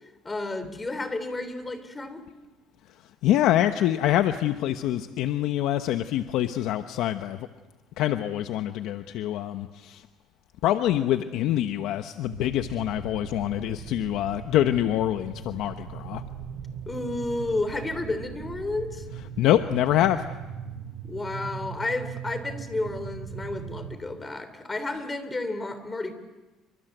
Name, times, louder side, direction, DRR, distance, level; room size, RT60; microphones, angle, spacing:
voice 1, 0.2-2.2 16.9-19.0 21.0-26.1, left 2 dB, 15° left, 11 dB, 3.3 m, -31 dB
voice 2, 3.2-7.5 8.0-10.0 10.6-16.2 19.4-20.2, left 12 dB, 70° left, 8 dB, 1.1 m, -25 dB
sound 1, 12.3-23.9, right 7 dB, 85° right, 6.5 m, -39 dB
28.5 x 25.5 x 8.0 m, 1.1 s
cardioid pair, 130°, 0 cm